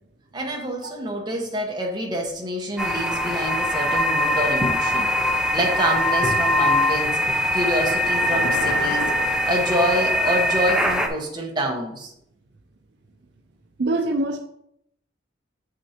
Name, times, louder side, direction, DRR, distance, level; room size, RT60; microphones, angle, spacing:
voice 1, 0.3-12.1, equal, 25° right, -1 dB, 1.2 m, -27 dB
sound 1, 2.8-11.1, left 1 dB, 5° right, 0.6 m, -22 dB
sound 2, 8.0-10.3, left 5 dB, 80° left, 0.4 m, -33 dB
voice 2, 13.8-14.4, right 2 dB, 65° right, 5 dB, 0.5 m, -23 dB
7.1 x 6.2 x 2.9 m, 0.75 s
head